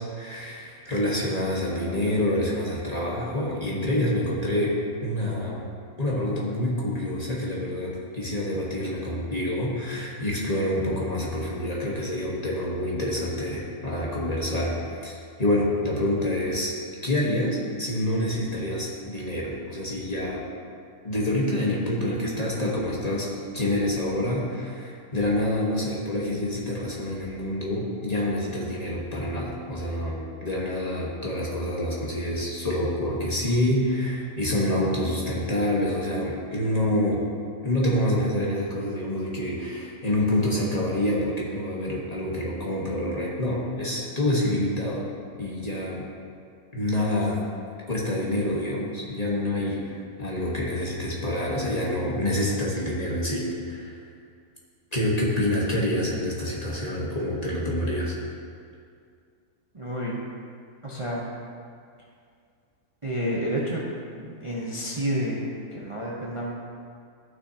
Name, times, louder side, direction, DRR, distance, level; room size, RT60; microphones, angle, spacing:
voice 1, 0.2-5.6 6.0-16.7 17.0-20.4 21.0-23.3 23.5-37.2 37.6-45.1 45.4-46.0 46.7-47.4 47.9-54.0 54.9-58.1, left 1 dB, 25° left, -5 dB, 1.4 m, -27 dB
voice 2, 59.7-60.2 60.8-61.3 63.0-63.8 64.2-66.5, equal, 25° right, -5 dB, 0.8 m, -30 dB
15.0 x 6.0 x 2.8 m, 2.3 s
omnidirectional pair, 1.6 m